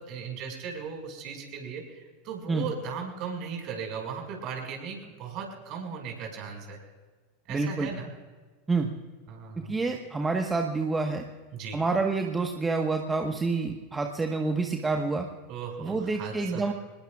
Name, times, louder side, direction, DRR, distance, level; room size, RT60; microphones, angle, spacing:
voice 1, 0.0-6.8 7.5-8.1 9.3-9.8 11.5-11.8 15.5-16.6, right 6 dB, 45° right, 2 dB, 5.7 m, -37 dB
voice 2, 7.5-7.9 8.7-8.9 9.7-11.2 11.7-15.3 15.8-16.7, right 3 dB, 15° right, 4 dB, 1.4 m, -28 dB
26.5 x 20.5 x 2.4 m, 1.4 s
figure-of-eight pair, 85°, 0 cm